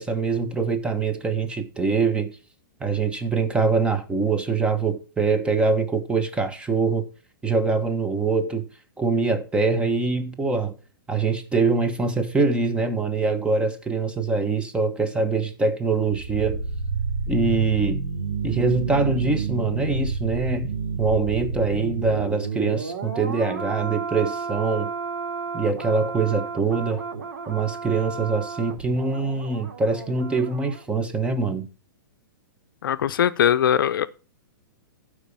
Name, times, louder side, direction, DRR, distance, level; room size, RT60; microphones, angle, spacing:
voice 1, 0.0-2.3 2.8-7.1 7.4-8.6 9.0-10.8 11.1-16.6 17.3-18.0 18.4-24.9 25.5-27.0 27.5-31.7, right 4 dB, 10° right, 1.2 m, -24 dB
sound 1, 15.9-30.8 31.1-31.3, right 4 dB, 70° right, 2.6 m, -30 dB
voice 2, 32.8-34.1, left 9 dB, 75° left, 0.6 m, -20 dB
12.5 x 5.0 x 5.4 m
hypercardioid pair, 130°, 11 cm